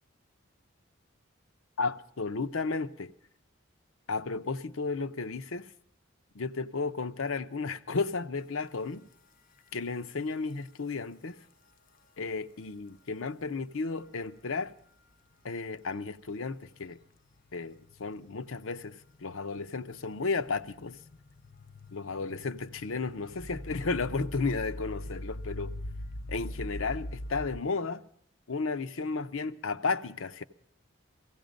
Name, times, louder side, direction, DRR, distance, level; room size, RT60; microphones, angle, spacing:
voice 1, 1.8-3.1 4.1-5.7 6.3-9.1 9.7-11.4 12.2-14.7 15.4-17.0 17.5-21.0 21.9-25.7 26.3-28.0 28.5-30.4, left 4 dB, 80° left, 0.7 m, -33 dB
sound 1, 8.9-9.0 9.6-9.7 10.6-10.7 13.8-14.2 15.8-15.9 16.6-27.6, left 1 dB, 40° left, 0.6 m, -43 dB
17.0 x 15.5 x 5.2 m
head